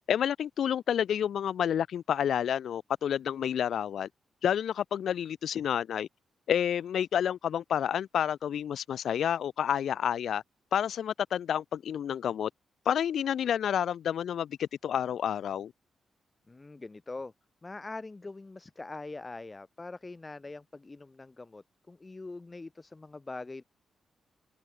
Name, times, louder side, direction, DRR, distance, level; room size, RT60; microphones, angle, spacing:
voice 1, 0.1-4.1 4.4-6.1 6.5-10.4 10.7-12.5 12.9-15.7, left 9 dB, 70° left, 4.1 m, -29 dB
voice 2, 16.5-17.3 17.6-23.6, left 3 dB, 20° left, 4.6 m, -43 dB
open air
cardioid pair, 115°, 0 cm